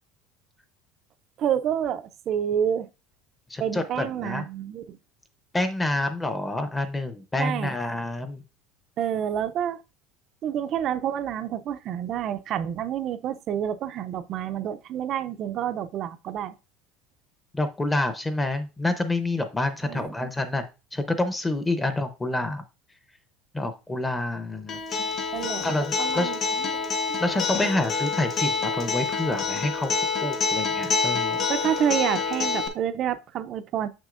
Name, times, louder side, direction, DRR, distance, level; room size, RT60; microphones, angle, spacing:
voice 1, 1.4-2.9 3.6-5.0 7.4-7.8 9.0-9.8 10.4-16.5 19.8-20.1 25.3-25.7 26.0-26.8 27.1-27.2 31.5-33.9, right 9 dB, 35° right, 0.4 m, -28 dB
voice 2, 3.5-4.4 5.5-8.4 17.5-20.6 20.9-22.6 23.5-24.8 25.6-26.3 27.2-29.9 30.2-31.4, left 2 dB, 10° left, 0.6 m, -28 dB
Acoustic guitar, 24.7-32.7, left 5 dB, 35° left, 1.0 m, -27 dB
7.3 x 6.2 x 2.5 m
cardioid pair, 160°, 0 cm